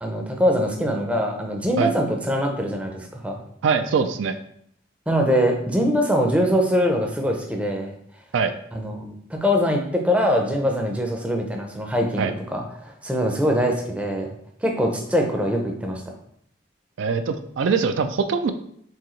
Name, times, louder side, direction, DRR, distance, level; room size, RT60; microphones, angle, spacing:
voice 1, 0.0-3.4 5.1-7.9 8.7-14.3 14.6-16.2, equal, 5° right, 1 dB, 0.5 m, -23 dB
voice 2, 3.6-4.4 8.3-8.5 12.2-12.3 17.0-18.5, right 5 dB, 75° right, 8 dB, 0.3 m, -22 dB
4.6 x 3.6 x 3.1 m, 0.68 s
head